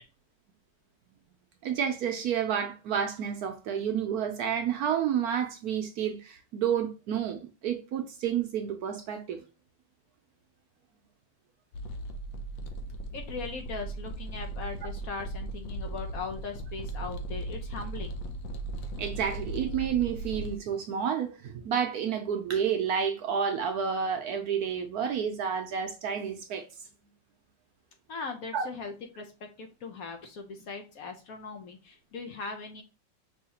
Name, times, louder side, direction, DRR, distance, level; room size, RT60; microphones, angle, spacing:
voice 1, 1.6-9.4 19.0-26.7 28.5-28.6, right 8 dB, 70° right, 1.0 m, -30 dB
sound 1, 11.7-20.6, right 1 dB, 90° left, 1.4 m, -37 dB
voice 2, 13.1-18.2 28.1-32.8, left 4 dB, 65° left, 1.0 m, -39 dB
5.5 x 2.8 x 2.8 m
omnidirectional pair, 2.0 m